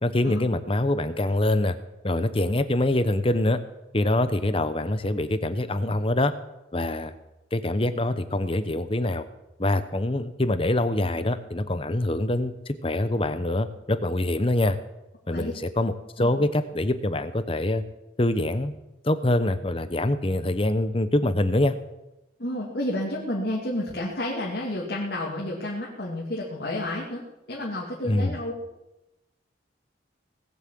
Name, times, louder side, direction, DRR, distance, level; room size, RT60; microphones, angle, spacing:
voice 1, 0.0-1.8 2.0-3.6 3.9-6.3 6.7-7.1 7.5-9.2 9.6-14.8 15.3-17.8 18.2-18.8 19.0-21.7 28.1-28.4, left 1 dB, 30° left, 11 dB, 0.9 m, -24 dB
voice 2, 22.4-28.5, left 1 dB, 55° left, -3 dB, 2.5 m, -31 dB
19.0 x 8.2 x 7.7 m, 0.96 s
head